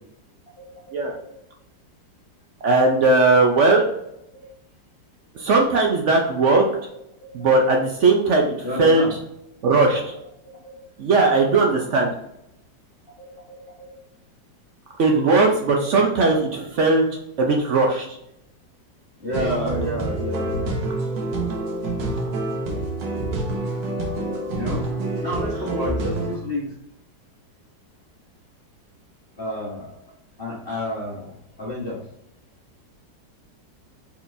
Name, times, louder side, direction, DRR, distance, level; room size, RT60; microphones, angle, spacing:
voice 1, 0.6-1.3 4.4-4.5 7.2-7.4 8.6-9.1 10.4-10.8 13.2-14.0 19.2-20.8 23.6-23.8 24.5-26.7 29.4-29.9 30.4-32.0, left 1 dB, 35° left, -6 dB, 1.3 m, -31 dB
voice 2, 2.6-3.8 5.3-6.7 7.3-9.1 9.6-10.1 11.0-12.1 15.0-17.1 17.4-18.2, right 3 dB, 60° right, 1 dB, 0.7 m, -18 dB
sound 1, 19.3-26.4, right 2 dB, 85° right, 1.6 m, -27 dB
4.4 x 4.2 x 2.6 m, 0.80 s
omnidirectional pair, 1.9 m